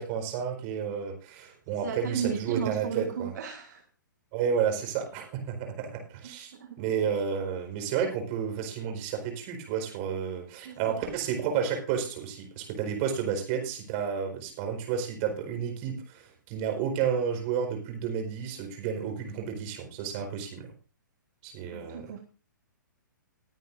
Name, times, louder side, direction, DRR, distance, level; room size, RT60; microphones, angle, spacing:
voice 1, 0.0-3.3 4.3-6.5 6.8-20.7 21.4-22.0, right 7 dB, 35° right, 4 dB, 4.5 m, -31 dB
voice 2, 1.8-3.8 6.2-6.8 10.6-11.1 21.7-22.2, right 7 dB, 60° right, 3 dB, 1.8 m, -35 dB
21.0 x 9.3 x 2.6 m, 0.36 s
figure-of-eight pair, 125°, 11 cm